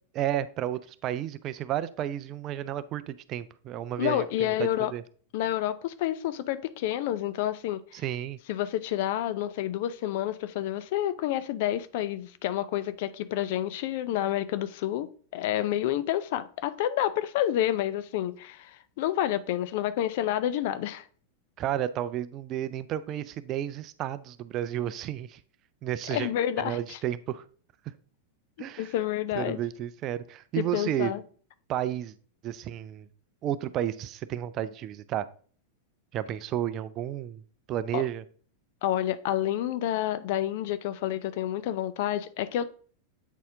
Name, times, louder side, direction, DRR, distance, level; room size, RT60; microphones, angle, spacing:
voice 1, 0.1-5.0 7.9-8.4 21.6-25.4 25.8-26.3 26.6-27.4 28.6-28.9 29.3-31.1 31.7-32.1 32.4-33.1 33.4-35.3 36.1-37.4 37.7-38.2, right 11 dB, 35° right, 0.4 m, -32 dB
voice 2, 4.0-4.9 5.3-8.0 8.5-21.0 26.1-27.0 28.6-29.6 30.6-31.2 37.9-38.0 38.8-42.6, left 12 dB, 50° left, 0.5 m, -29 dB
8.1 x 4.2 x 3.6 m
figure-of-eight pair, 90°, 0 cm